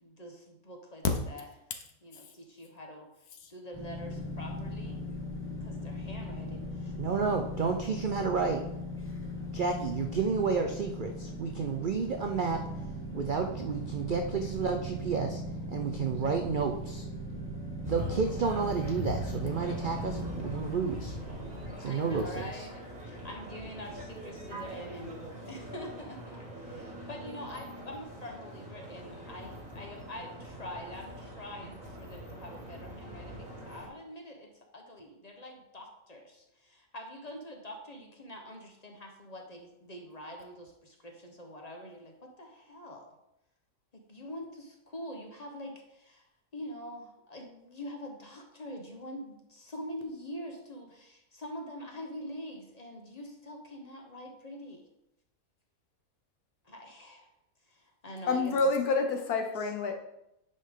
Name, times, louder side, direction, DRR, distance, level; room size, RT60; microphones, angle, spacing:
voice 1, 0.0-1.5 2.0-3.1 3.5-5.0 5.6-6.9 21.8-43.1 43.9-46.2 46.5-54.9 56.6-57.3 57.7-58.5 59.6-59.7, equal, 30° left, 2 dB, 0.9 m, -45 dB
sound 1, 3.7-21.7, equal, 10° left, 0.9 m, -39 dB
voice 2, 7.0-8.6 9.5-12.6 13.1-15.4 15.7-17.0 17.8-21.2 21.8-22.7, right 5 dB, 85° right, 4 dB, 0.4 m, -31 dB
sound 2, 17.8-33.9, equal, 25° right, 1.6 m, -42 dB
voice 3, 58.3-60.0, left 3 dB, 75° left, 5 dB, 1.4 m, -28 dB
9.3 x 5.1 x 3.7 m, 0.84 s
omnidirectional pair, 1.6 m